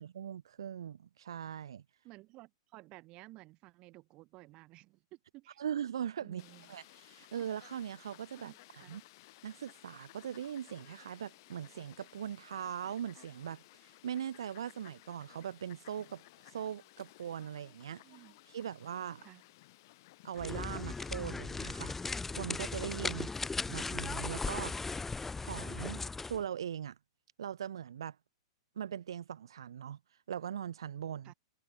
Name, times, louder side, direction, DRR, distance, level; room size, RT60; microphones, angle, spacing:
voice 1, 0.0-1.8 5.6-6.4 6.7-8.5 8.9-9.0 9.4-18.0 18.5-19.2 20.2-23.3 23.7-24.8 25.3-26.0 26.3-27.0 27.4-28.2 28.8-30.0 30.3-31.3, right 9 dB, 65° right, 0.5 m, -40 dB
voice 2, 2.0-5.6 6.2-6.8 8.4-9.0 18.0-18.4 19.2-19.4 23.1-23.3 31.2-31.3, right 20 dB, 35° right, 0.7 m, -55 dB
Fowl, 6.4-21.1, left 20 dB, 50° left, 2.0 m, -58 dB
sound 1, 20.4-26.4, left 4 dB, 10° left, 0.4 m, -37 dB
figure-of-eight pair, 110°, 3 cm